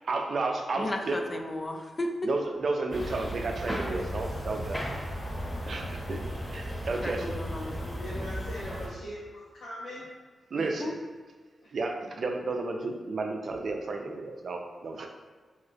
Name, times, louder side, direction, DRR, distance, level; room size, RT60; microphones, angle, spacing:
voice 1, 0.1-1.2 2.2-4.8 5.7-6.2 6.5-7.3 10.5-10.9 11.7-15.1, right 3 dB, 65° right, 3 dB, 0.4 m, -32 dB
voice 2, 0.8-2.3 7.0-8.5 10.6-10.9, left 1 dB, 40° left, 3 dB, 0.4 m, -35 dB
sound 1, 2.9-8.9, equal, 15° left, 0.8 m, -35 dB
voice 3, 7.6-10.0 11.6-11.7, left 1 dB, 85° left, -8 dB, 0.6 m, -41 dB
3.1 x 2.8 x 2.6 m, 1.4 s
cardioid pair, 55°, 0 cm